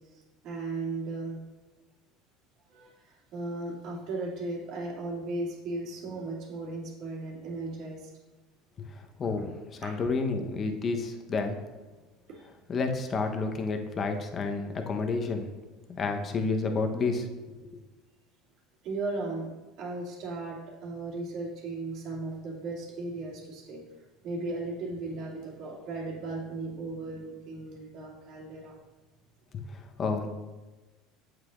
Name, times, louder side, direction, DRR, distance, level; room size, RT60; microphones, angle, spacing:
voice 1, 0.1-1.4 2.7-8.1 9.8-10.0 12.3-12.5 18.8-19.5 19.8-23.9 24.2-28.7, right 2 dB, 60° right, -3 dB, 2.4 m, -36 dB
voice 2, 9.2-11.6 12.7-15.5 15.9-17.3 29.5-30.3, left 4 dB, 35° left, 5 dB, 1.0 m, -30 dB
8.1 x 7.8 x 2.5 m, 1.2 s
supercardioid pair, 100°, 0 cm